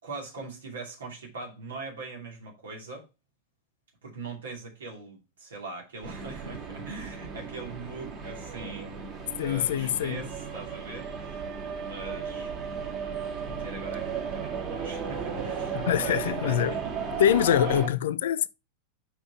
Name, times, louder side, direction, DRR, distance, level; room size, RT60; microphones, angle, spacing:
voice 1, 0.0-3.1 4.0-9.0 9.4-11.4 11.8-12.5 13.4-17.0 17.6-17.9, right 3 dB, 65° right, 2.7 m, -41 dB
sound 1, 6.0-17.9, right 6 dB, 35° right, 2.9 m, -35 dB
voice 2, 9.4-10.2 15.7-16.8 17.2-18.5, left 10 dB, 60° left, 0.5 m, -24 dB
5.9 x 5.4 x 4.6 m
figure-of-eight pair, 90°, 0 cm